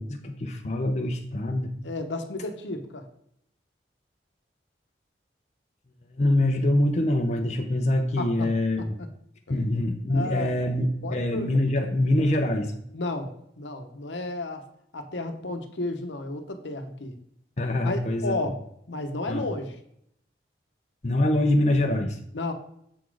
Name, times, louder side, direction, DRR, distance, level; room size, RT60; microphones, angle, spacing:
voice 1, 0.0-1.7 6.1-8.8 9.5-12.7 17.6-18.3 19.3-19.4 21.0-22.2, left 1 dB, 40° left, 3 dB, 0.6 m, -24 dB
voice 2, 1.8-3.1 8.2-8.5 8.8-9.1 9.5-9.6 10.1-10.6 11.0-11.5 12.9-14.7 14.9-17.1 17.8-18.6 18.9-19.7 22.3-22.5, left 2 dB, 85° left, 6 dB, 0.9 m, -32 dB
7.0 x 4.2 x 4.7 m, 0.70 s
head